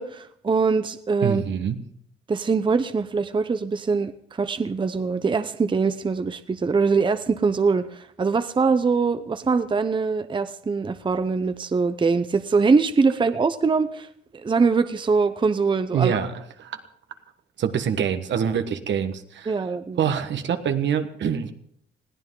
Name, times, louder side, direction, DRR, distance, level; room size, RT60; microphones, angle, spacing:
voice 1, 0.0-1.4 2.3-4.1 4.4-14.1 14.3-16.2 19.5-20.0, right 4 dB, 25° right, 11 dB, 0.7 m, -23 dB
voice 2, 1.2-1.8 15.9-16.3 16.6-16.8 17.6-19.6 20.0-21.5, right 8 dB, 65° right, 9 dB, 1.5 m, -25 dB
21.0 x 15.5 x 3.8 m, 0.65 s
cardioid pair, 90°, 20 cm